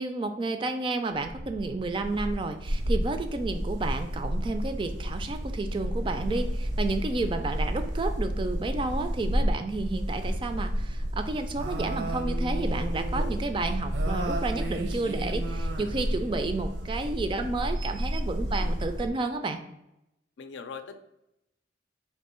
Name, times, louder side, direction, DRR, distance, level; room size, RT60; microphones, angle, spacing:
voice 1, 0.0-19.6, right 3 dB, 30° right, 7 dB, 0.3 m, -31 dB
sound 1, 1.1-19.1, equal, 70° right, 0.6 m, -31 dB
voice 2, 18.4-18.8 20.4-21.0, left 5 dB, 80° left, 9 dB, 0.4 m, -41 dB
3.5 x 2.6 x 4.2 m, 0.86 s
head